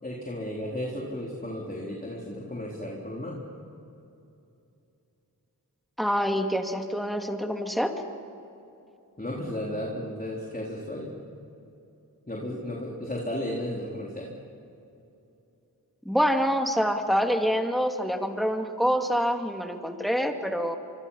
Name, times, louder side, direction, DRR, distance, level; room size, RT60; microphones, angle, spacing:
voice 1, 0.0-3.4 9.2-11.1 12.3-14.3, left 1 dB, 25° left, -3 dB, 4.0 m, -34 dB
voice 2, 6.0-7.9 16.0-20.8, equal, ahead, 4 dB, 2.6 m, -26 dB
25.5 x 25.0 x 5.8 m, 2.8 s
cardioid pair, 40°, 38 cm